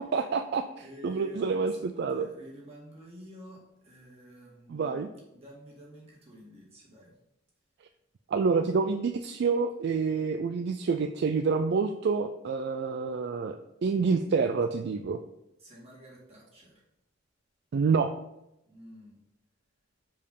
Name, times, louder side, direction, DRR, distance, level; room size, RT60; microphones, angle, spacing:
voice 1, 0.0-2.3 4.7-5.1 8.3-13.6 13.8-15.2 17.7-18.1, right 5 dB, 55° right, 8 dB, 0.3 m, -28 dB
voice 2, 0.8-7.1 15.6-16.8 18.7-19.2, right 1 dB, 30° right, -5 dB, 2.2 m, -50 dB
5.0 x 4.7 x 5.3 m, 0.87 s
head